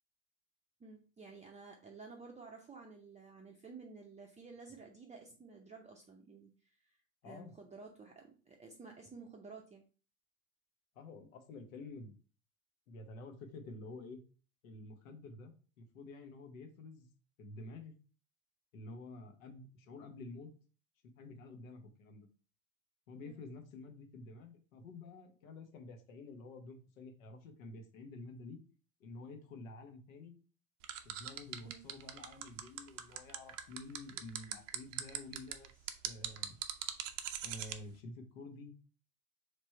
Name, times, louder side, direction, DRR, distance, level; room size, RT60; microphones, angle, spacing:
voice 1, 0.8-7.0 7.2-9.8 23.2-23.4 31.6-31.8, right 4 dB, 15° right, 0 dB, 0.6 m, -53 dB
voice 2, 10.9-12.1 12.9-14.2 14.6-17.1 17.4-17.9 18.7-20.5 21.2-22.3 23.1-28.6 29.0-30.3 31.0-36.5 37.4-38.7, left 2 dB, 75° left, 5 dB, 1.1 m, -50 dB
sound 1, 30.8-37.8, right 11 dB, 65° right, 0.7 m, -40 dB
3.3 x 3.2 x 4.3 m, 0.36 s
hypercardioid pair, 80°, 41 cm